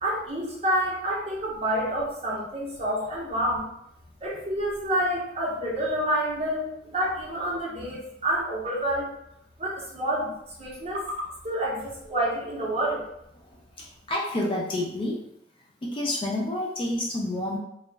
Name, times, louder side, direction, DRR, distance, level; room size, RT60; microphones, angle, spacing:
voice 1, 0.0-3.7 4.2-9.2 9.6-13.1, right 1 dB, 30° right, -4 dB, 0.7 m, -28 dB
voice 2, 13.4-15.2 15.8-17.6, left 1 dB, 25° left, -2 dB, 0.3 m, -29 dB
2.3 x 2.0 x 3.2 m, 0.79 s
head